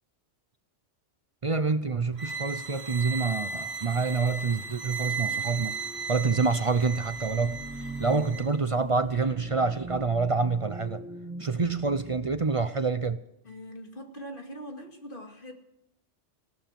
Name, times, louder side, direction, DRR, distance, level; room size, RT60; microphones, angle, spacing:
voice 1, 1.4-5.8 6.1-11.1 11.4-13.2, right 4 dB, 35° right, 0.5 m, -27 dB
sound 1, 2.2-8.5, right 4 dB, 60° right, 1.9 m, -36 dB
sound 2, 4.3-12.4, right 1 dB, 20° right, 2.7 m, -44 dB
voice 2, 13.4-15.5, equal, 45° left, 2.4 m, -42 dB
17.5 x 12.0 x 5.9 m
omnidirectional pair, 1.2 m